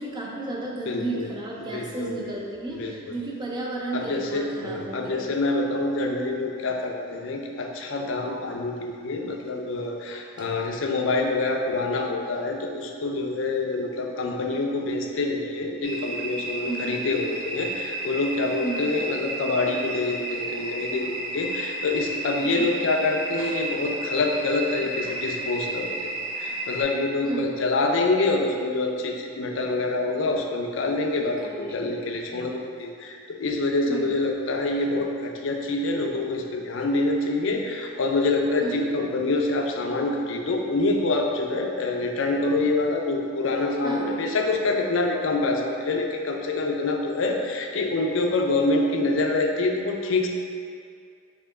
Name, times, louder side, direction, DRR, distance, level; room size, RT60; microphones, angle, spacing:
voice 1, 0.0-5.3 10.4-10.5 16.7-16.9 18.6-18.9 22.6-22.7 27.2-27.5 31.2-31.9 33.9-34.2 38.6-38.8 43.8-44.2, right 2 dB, 20° right, -2 dB, 0.4 m, -33 dB
voice 2, 0.9-1.3 1.6-2.3 2.7-3.2 3.9-26.1 26.4-31.4 31.7-50.3, left 2 dB, 65° left, 2 dB, 0.4 m, -26 dB
sound 1, 15.8-26.8, right 2 dB, 35° right, 1.5 m, -33 dB
4.5 x 2.8 x 3.6 m, 2.3 s
head